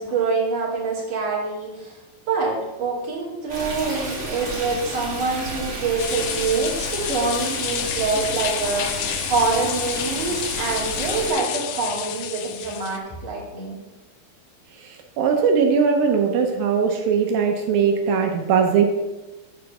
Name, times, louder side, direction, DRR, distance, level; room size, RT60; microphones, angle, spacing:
voice 1, 0.0-2.0 2.3-13.8, right 4 dB, 50° right, -4 dB, 3.0 m, -25 dB
Stream, 3.5-11.3, right 1 dB, 15° right, 2.4 m, -32 dB
sound 1, 6.0-13.0, left 10 dB, 85° left, 1.8 m, -30 dB
voice 2, 14.8-18.9, right 6 dB, 80° right, 3 dB, 2.5 m, -20 dB
9.2 x 3.8 x 6.6 m, 1.1 s
omnidirectional pair, 4.3 m